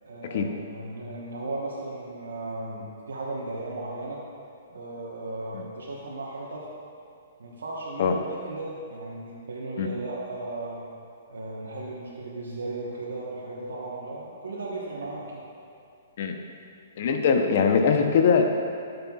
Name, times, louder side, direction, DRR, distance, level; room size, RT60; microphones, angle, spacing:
voice 1, 0.0-4.2 4.7-6.7 7.4-10.8 11.3-15.4, right 2 dB, 85° right, -5 dB, 1.2 m, -36 dB
voice 2, 17.0-18.4, left 6 dB, 60° left, 4 dB, 0.8 m, -21 dB
12.0 x 6.7 x 2.4 m, 2.7 s
hypercardioid pair, 130°, 0 cm